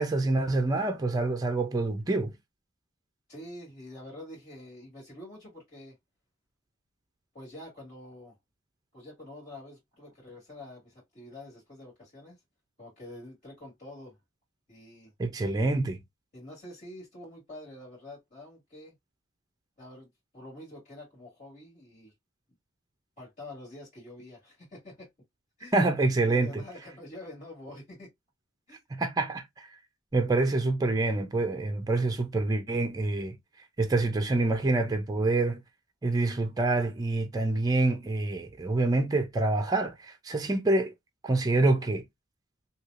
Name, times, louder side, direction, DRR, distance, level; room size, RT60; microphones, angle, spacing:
voice 1, 0.0-2.3 15.2-16.0 25.7-26.5 28.9-29.7 30.1-33.4 33.8-35.6 36.0-40.9 41.2-42.0, right 2 dB, 20° right, 0.5 m, -26 dB
voice 2, 3.3-6.0 7.3-8.4 8.9-12.4 12.8-14.2 14.7-15.1 16.3-18.9 19.8-20.1 20.3-22.1 23.2-25.1 25.6-25.8 26.2-28.1 28.7-28.8, left 1 dB, 35° left, 2.0 m, -46 dB
3.2 x 2.8 x 2.4 m
head